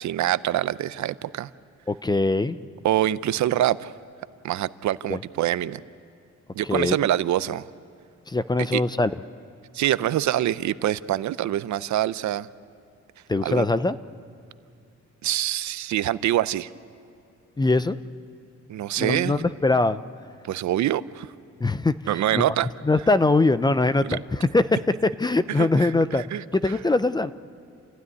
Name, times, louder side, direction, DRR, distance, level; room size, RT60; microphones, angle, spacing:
voice 1, 0.0-1.5 2.8-3.9 4.4-5.8 6.5-7.7 8.7-8.8 9.7-12.5 13.4-13.7 15.2-16.7 18.7-19.3 20.4-21.3 22.1-22.7 24.0-24.2 25.6-25.9 26.3-26.4, right 12 dB, 75° right, 16 dB, 0.6 m, -25 dB
voice 2, 1.9-2.6 5.1-5.2 6.7-7.0 8.3-9.1 13.3-14.0 17.6-18.0 19.0-20.0 21.6-22.0 22.3-22.4 22.8-26.2 26.5-27.3, left 2 dB, 15° left, 14 dB, 0.5 m, -22 dB
28.5 x 15.5 x 9.7 m, 2.5 s
cardioid pair, 130°, 29 cm